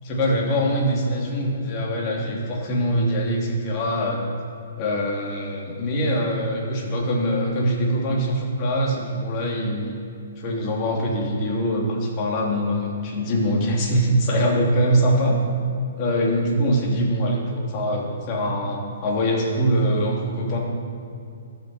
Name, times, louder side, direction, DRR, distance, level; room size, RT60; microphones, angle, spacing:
voice 1, 0.0-4.2 4.8-10.0 10.4-15.4 16.0-20.6, equal, 35° left, -2 dB, 3.2 m, -23 dB
20.5 x 8.3 x 4.6 m, 2.6 s
figure-of-eight pair, 120°, 0 cm